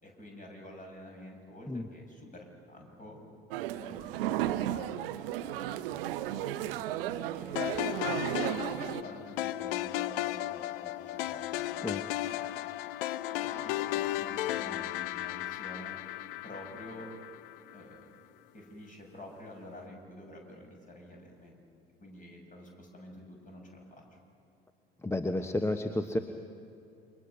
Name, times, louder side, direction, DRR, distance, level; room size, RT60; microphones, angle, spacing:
voice 1, 0.0-3.2 3.7-10.5 10.8-12.6 13.3-16.0 16.4-17.1 17.7-18.0 18.5-21.6 22.0-24.0, left 1 dB, 25° left, 1 dB, 6.9 m, -49 dB
sound 1, 3.5-9.0, right 13 dB, 65° right, 0.8 m, -34 dB
sound 2, 7.6-17.8, left 15 dB, 65° left, 0.7 m, -35 dB
voice 2, 25.0-26.2, left 1 dB, 10° left, 8 dB, 1.0 m, -31 dB
28.5 x 25.0 x 6.1 m, 2.7 s
figure-of-eight pair, 65°, 31 cm